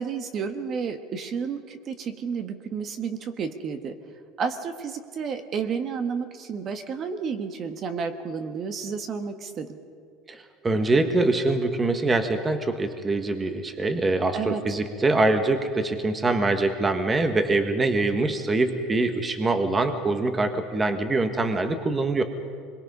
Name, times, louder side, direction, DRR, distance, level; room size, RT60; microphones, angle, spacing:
voice 1, 0.0-4.0 4.4-9.8 14.3-14.6, right 6 dB, 35° right, 7 dB, 1.4 m, -31 dB
voice 2, 10.3-22.2, right 2 dB, 15° right, 7 dB, 1.4 m, -24 dB
25.0 x 22.0 x 5.5 m, 2.2 s
supercardioid pair, 140°, 0 cm